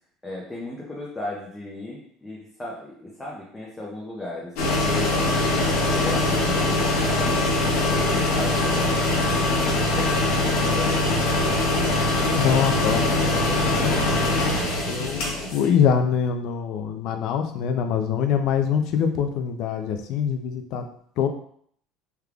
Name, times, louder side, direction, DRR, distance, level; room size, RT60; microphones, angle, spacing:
voice 1, 0.2-5.4 6.0-12.4 15.1-15.5, left 2 dB, 10° left, -4 dB, 0.6 m, -36 dB
sound 1, 4.6-15.7, left 2 dB, 75° left, 1.0 m, -22 dB
voice 2, 12.4-14.1 14.9-20.8 21.2-21.3, left 7 dB, 55° left, 6 dB, 0.4 m, -24 dB
3.4 x 3.3 x 2.3 m, 0.63 s
cardioid pair, 150°, 0 cm